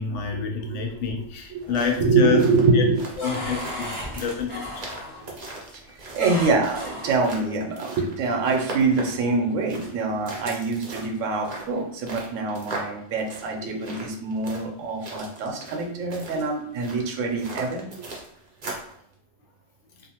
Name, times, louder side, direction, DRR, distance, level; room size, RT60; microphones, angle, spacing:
voice 1, 0.0-2.4 2.7-2.8 3.2-3.9 4.1-4.8, left 6 dB, 70° left, 2 dB, 0.9 m, -27 dB
sound 1, 0.8-1.4 1.8-2.3 2.7-5.3 6.2-7.3, left 1 dB, 25° left, 0.9 m, -35 dB
sound 2, 1.5-19.0, right 2 dB, 45° right, 0.6 m, -40 dB
voice 2, 2.0-3.0 5.2-5.4 5.7-18.1 18.6-18.7, right 3 dB, 80° right, 3 dB, 0.9 m, -25 dB
2.6 x 2.4 x 2.8 m, 0.71 s
omnidirectional pair, 1.3 m